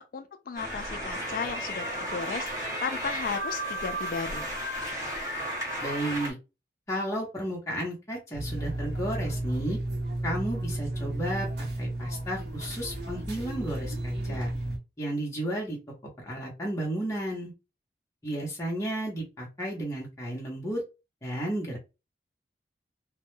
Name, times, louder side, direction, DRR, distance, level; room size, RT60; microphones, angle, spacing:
voice 1, 0.0-4.5, left 5 dB, 50° left, 0.3 m, -35 dB
sound 1, 0.6-6.3, equal, 15° right, 0.9 m, -34 dB
voice 2, 5.8-6.3 6.9-9.8 10.2-14.5 15.0-15.8 16.2-17.5 18.2-20.8 21.2-21.8, right 1 dB, 15° left, 0.7 m, -33 dB
sound 2, 8.3-14.8, right 1 dB, 70° right, 0.8 m, -33 dB
2.2 x 2.1 x 3.0 m
head